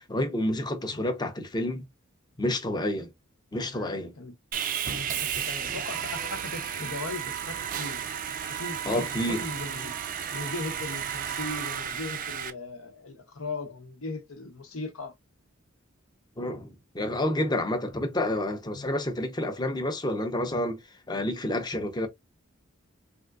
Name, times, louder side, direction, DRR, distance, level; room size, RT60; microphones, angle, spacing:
voice 1, 0.0-1.9 2.4-3.1 3.5-4.1 8.9-9.4 16.4-20.8 21.1-22.1, left 1 dB, 20° left, 0.6 m, -29 dB
voice 2, 3.5-4.3 4.9-8.0 8.5-9.9 10.3-15.1 18.7-18.9, left 3 dB, 85° left, 0.9 m, -38 dB
Sawing, 4.5-12.5, right 8 dB, 40° right, 0.4 m, -33 dB
3.6 x 2.5 x 2.4 m
head